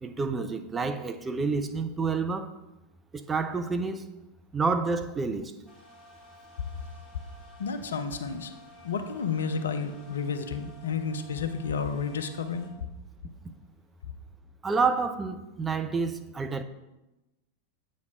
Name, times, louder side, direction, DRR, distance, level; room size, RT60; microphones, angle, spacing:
voice 1, 0.0-2.5 3.1-4.1 4.5-5.5 14.6-16.6, right 4 dB, 15° right, 0.4 m, -29 dB
sound 1, 5.7-12.7, left 1 dB, 10° left, 1.8 m, -53 dB
voice 2, 7.6-8.5 8.8-12.7, left 5 dB, 65° left, 0.5 m, -31 dB
8.2 x 3.2 x 5.0 m
figure-of-eight pair, 90°, 0 cm